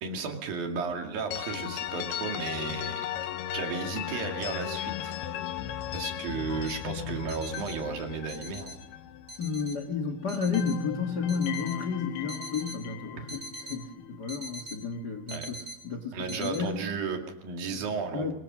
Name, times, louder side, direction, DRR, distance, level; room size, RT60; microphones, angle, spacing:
voice 1, 0.0-3.1 3.5-5.2 5.9-8.8 13.2-13.3 15.3-15.5 16.1-18.3, right 5 dB, 65° right, 3 dB, 4.0 m, -34 dB
sound 1, 1.3-10.0 10.3-14.4, left 11 dB, 80° left, 2.9 m, -37 dB
sound 2, 6.7-6.8 7.3-7.7 8.3-8.7 9.3-9.7 10.3-10.7 11.3-11.7 12.3-12.8 13.3-13.8 14.3-14.8 15.3-15.8 16.3-16.6, right 1 dB, 20° right, 4.0 m, -42 dB
voice 2, 9.4-13.4 13.7-16.9 17.7-17.8 18.1-18.3, left 5 dB, 60° left, 8 dB, 1.0 m, -32 dB
24.0 x 22.0 x 6.3 m, 0.86 s
omnidirectional pair, 4.6 m